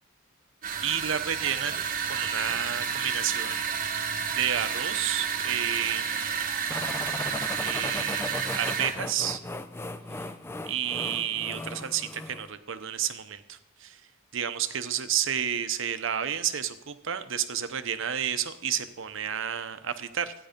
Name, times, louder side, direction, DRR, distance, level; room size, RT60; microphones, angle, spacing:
sound 1, 0.6-9.0, right 7 dB, 45° right, 1.0 m, -31 dB
voice 1, 0.8-6.5 7.6-9.4 10.7-14.0 14.3-20.3, right 9 dB, 65° right, 11 dB, 0.8 m, -31 dB
sound 2, 6.7-12.5, left 2 dB, 10° left, 0.5 m, -37 dB
14.0 x 9.4 x 5.2 m, 0.93 s
head